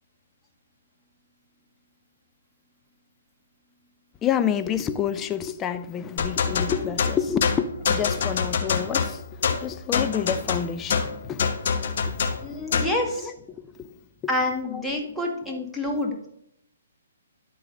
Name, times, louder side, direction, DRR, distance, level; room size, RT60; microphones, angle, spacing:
voice 1, 4.2-12.4 12.8-12.9 13.2-13.9 14.2-14.3 14.7-15.6, left 8 dB, 20° left, 0.7 m, -29 dB
sound 1, 6.2-13.0, left 6 dB, 55° left, 1.3 m, -25 dB
voice 2, 12.4-13.3 14.3-16.2, left 1 dB, ahead, 1.8 m, -27 dB
12.0 x 4.0 x 6.1 m
hypercardioid pair, 135°, 0 cm